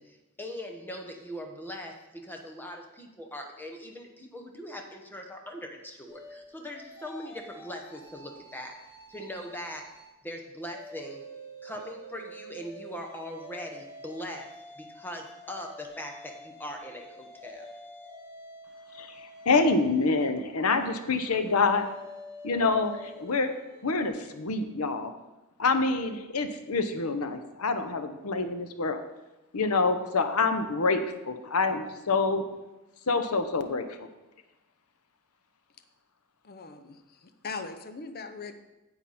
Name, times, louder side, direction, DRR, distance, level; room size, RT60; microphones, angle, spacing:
voice 1, 0.0-8.8 9.1-9.9 10.2-11.2 11.6-14.5 14.8-17.7, equal, 10° left, 2 dB, 1.1 m, -41 dB
sound 1, 6.1-10.1 10.5-24.1, equal, 30° left, 3.7 m, -48 dB
voice 2, 19.4-21.9 22.4-23.5 23.8-25.1 25.6-29.0 29.5-32.4 33.1-34.1, left 3 dB, 85° left, 8 dB, 0.9 m, -26 dB
voice 3, 36.4-38.5, left 4 dB, 45° left, 8 dB, 0.7 m, -40 dB
9.8 x 8.0 x 4.2 m, 1.0 s
head